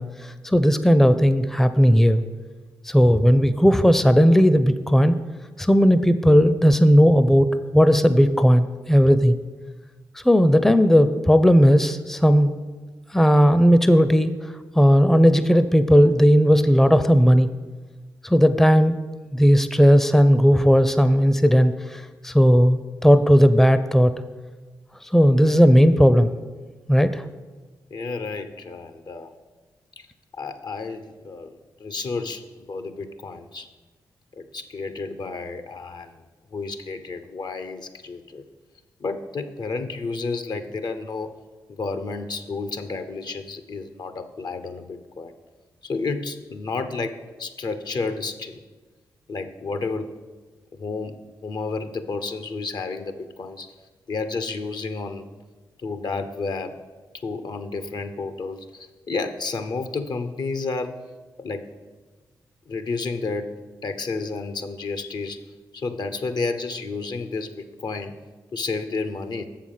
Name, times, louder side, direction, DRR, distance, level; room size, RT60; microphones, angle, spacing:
voice 1, 0.0-2.2 2.9-5.2 5.6-9.4 10.2-12.5 13.1-14.3 14.8-17.5 18.2-19.0 19.3-24.1 25.1-26.3 26.9-27.2, equal, 5° left, 12 dB, 0.5 m, -16 dB
voice 2, 27.9-29.3 30.0-30.1 30.4-33.7 34.4-36.2 36.5-38.4 39.0-41.3 41.7-45.3 45.8-48.6 49.3-50.1 50.8-51.1 51.4-53.7 54.1-55.3 55.8-56.7 57.2-61.0 61.4-61.6 62.7-63.5 63.8-65.4 65.7-68.1 68.5-69.4, left 3 dB, 55° left, 10 dB, 0.7 m, -31 dB
7.1 x 5.6 x 6.4 m, 1.3 s
supercardioid pair, 40°, 8 cm